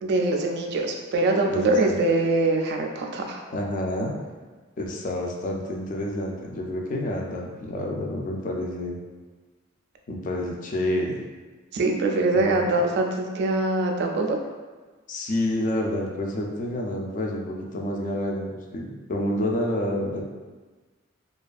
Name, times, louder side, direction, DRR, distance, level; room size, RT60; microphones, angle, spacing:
voice 1, 0.0-3.4 11.7-14.4, right 2 dB, 55° right, 2 dB, 0.3 m, -23 dB
voice 2, 1.5-1.9 3.5-4.2 4.8-9.0 10.1-11.2 12.3-12.6 15.1-20.2, left 1 dB, 40° left, -1 dB, 0.3 m, -28 dB
2.4 x 2.3 x 2.4 m, 1.3 s
head